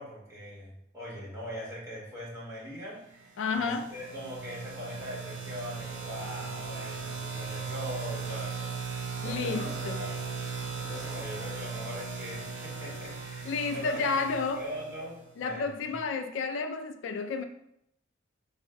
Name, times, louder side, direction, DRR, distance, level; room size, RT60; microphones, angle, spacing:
voice 1, 0.0-10.5 10.7-16.0, equal, 15° right, -6 dB, 1.2 m, -41 dB
voice 2, 3.4-3.9 9.2-10.0 13.5-14.6 15.4-17.4, left 4 dB, 80° left, 7 dB, 0.3 m, -31 dB
sound 1, 3.5-15.3, right 5 dB, 75° right, 0.7 m, -38 dB
4.4 x 2.1 x 3.3 m, 0.77 s
head